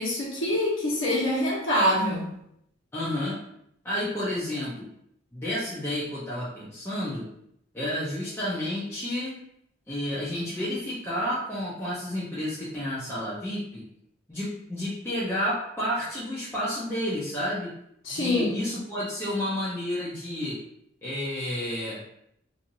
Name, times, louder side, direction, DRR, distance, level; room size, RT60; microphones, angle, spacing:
voice 1, 0.0-2.3 18.0-18.7, left 1 dB, 70° left, -5 dB, 1.0 m, -25 dB
voice 2, 2.9-3.4 3.8-4.9 5.3-7.3 7.7-9.4 9.9-13.8 14.3-17.7 18.1-20.6 21.0-22.0, left 1 dB, 10° left, -10 dB, 0.5 m, -30 dB
2.6 x 2.4 x 2.8 m, 0.73 s
head